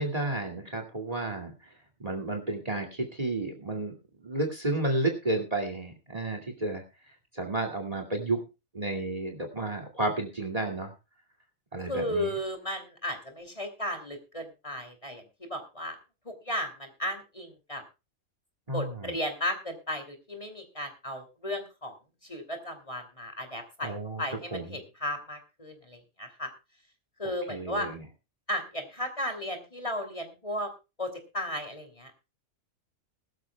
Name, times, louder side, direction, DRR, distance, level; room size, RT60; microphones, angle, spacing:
voice 1, 0.0-1.5 2.0-3.9 4.2-6.8 7.3-8.4 8.7-10.9 11.7-12.3 18.7-19.1 23.8-24.2 24.5-24.8 27.2-28.0, right 2 dB, 25° right, 5 dB, 2.5 m, -32 dB
voice 2, 11.8-16.0 16.2-17.8 18.7-21.9 22.3-26.5 27.2-27.9 28.5-30.7 31.0-32.1, left 1 dB, 25° left, 5 dB, 2.9 m, -35 dB
21.5 x 13.0 x 2.3 m, 0.28 s
omnidirectional pair, 1.5 m